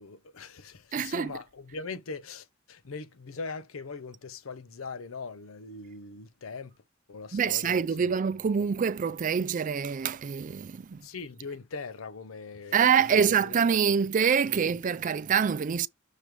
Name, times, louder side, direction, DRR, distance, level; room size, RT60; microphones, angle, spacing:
voice 1, 0.0-8.2 11.0-13.6 14.5-14.7, left 4 dB, 85° left, 0.7 m, -41 dB
voice 2, 0.9-1.3 7.3-11.0 12.7-15.9, right 7 dB, 40° right, 0.4 m, -25 dB
6.4 x 3.1 x 4.9 m
head